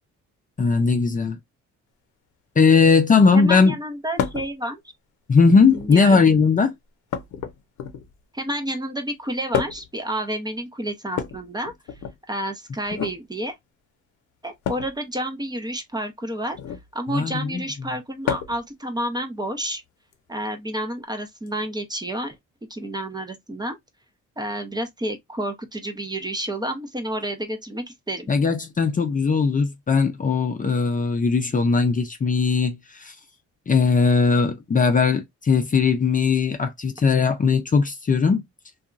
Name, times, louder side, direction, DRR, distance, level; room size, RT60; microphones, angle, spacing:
voice 1, 0.6-1.4 2.6-3.7 5.3-6.7 17.1-17.7 28.3-33.1 33.7-38.4, left 5 dB, 25° left, 0.5 m, -19 dB
voice 2, 3.3-4.8 5.7-6.2 8.3-11.7 12.3-13.6 14.4-16.6 16.9-19.8 20.3-22.4 22.7-23.8 24.4-28.3, right 1 dB, 15° right, 0.6 m, -30 dB
sound 1, 4.2-4.5 5.6-6.1 7.1-8.2 9.5-10.0 11.1-12.2 12.9-13.2 14.6-14.9 16.5-16.9 18.2-18.7 20.1-20.2 21.5-21.6, left 8 dB, 75° left, 0.7 m, -29 dB
2.7 x 2.3 x 2.4 m
cardioid pair, 90°, 30 cm